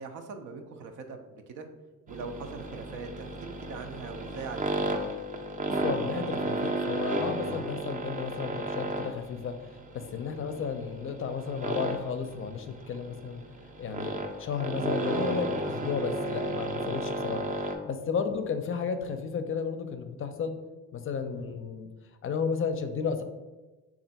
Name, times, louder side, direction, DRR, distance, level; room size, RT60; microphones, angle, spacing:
voice 1, 0.0-1.7 2.1-5.2 10.4-10.6 21.3-21.5, right 4 dB, 85° right, 6 dB, 0.6 m, -42 dB
sound 1, 2.1-17.8, right 2 dB, 25° right, 0.4 m, -33 dB
voice 2, 5.7-9.6 9.9-13.4 13.8-20.5 20.9-21.9 22.2-23.2, left 6 dB, 45° left, 8 dB, 0.4 m, -33 dB
3.3 x 2.5 x 4.0 m, 1.2 s
cardioid pair, 90°, 30 cm